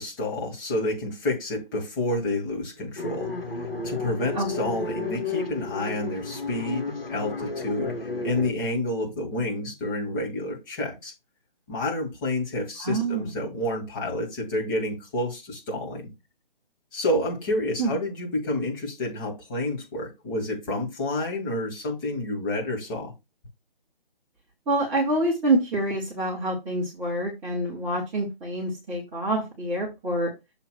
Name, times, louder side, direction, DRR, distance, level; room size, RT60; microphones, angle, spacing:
voice 1, 0.0-3.3 3.8-11.1 11.7-16.1 16.9-23.1, left 1 dB, 20° left, 2.1 m, -29 dB
sound 1, 3.0-8.5, left 3 dB, 75° left, 2.1 m, -32 dB
voice 2, 12.8-13.3 17.8-17.9 24.7-30.3, right 1 dB, 5° right, 0.6 m, -26 dB
6.8 x 2.9 x 5.9 m
figure-of-eight pair, 145°, 29 cm